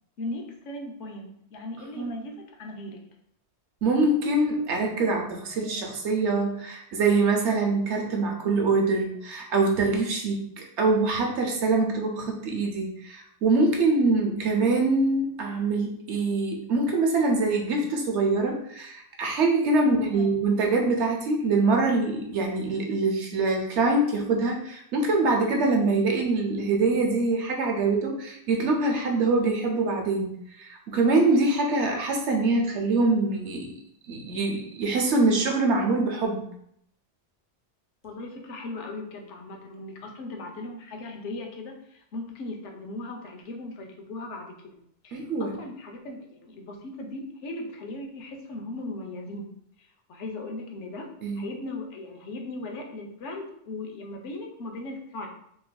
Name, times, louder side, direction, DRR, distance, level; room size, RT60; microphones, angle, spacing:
voice 1, 0.2-3.0 19.8-20.3 38.0-44.7 45.0-49.5 50.1-51.1 51.4-55.3, left 2 dB, 85° left, 2 dB, 1.0 m, -38 dB
voice 2, 3.8-10.4 10.8-33.7 34.1-36.4 45.1-45.5 51.2-51.4, right 3 dB, 80° right, 1 dB, 1.0 m, -24 dB
5.1 x 2.5 x 2.2 m, 0.71 s
omnidirectional pair, 1.2 m